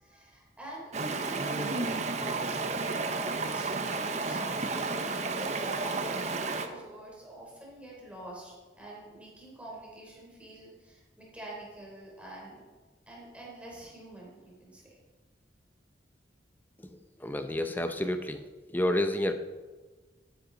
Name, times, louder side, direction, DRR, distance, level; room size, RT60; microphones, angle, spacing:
voice 1, 0.0-12.6 13.1-14.9, right 1 dB, 5° right, -4 dB, 3.3 m, -46 dB
Stream, 0.9-6.7, right 3 dB, 35° right, 0.8 m, -32 dB
voice 2, 16.8-19.3, left 1 dB, 10° left, 8 dB, 0.6 m, -30 dB
12.5 x 10.0 x 3.9 m, 1.3 s
head